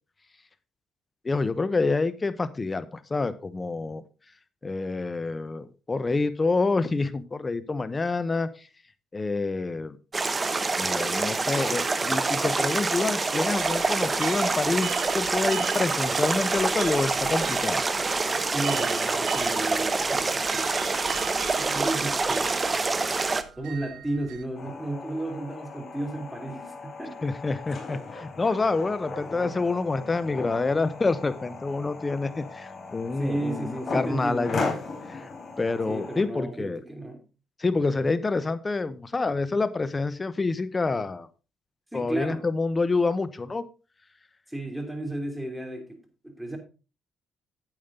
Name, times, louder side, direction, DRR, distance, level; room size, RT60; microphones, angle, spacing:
voice 1, 1.2-4.0 4.6-8.7 9.1-10.0 10.8-17.8 27.2-34.7 35.1-35.3 35.6-36.8 37.6-41.3 41.9-43.6, left 3 dB, 25° left, 1.0 m, -27 dB
sound 1, 10.1-23.4, right 3 dB, 25° right, 0.9 m, -26 dB
sound 2, 13.6-24.5, right 12 dB, 85° right, 0.5 m, -41 dB
voice 2, 18.5-20.7 21.5-22.7 23.6-27.3 29.2-29.8 33.2-34.6 35.9-37.2 41.9-42.4 44.5-46.0 46.2-46.6, right 1 dB, 5° right, 2.9 m, -33 dB
sound 3, 24.5-36.2, left 3 dB, 45° left, 3.8 m, -37 dB
9.1 x 8.6 x 3.8 m
cardioid pair, 90°, 0 cm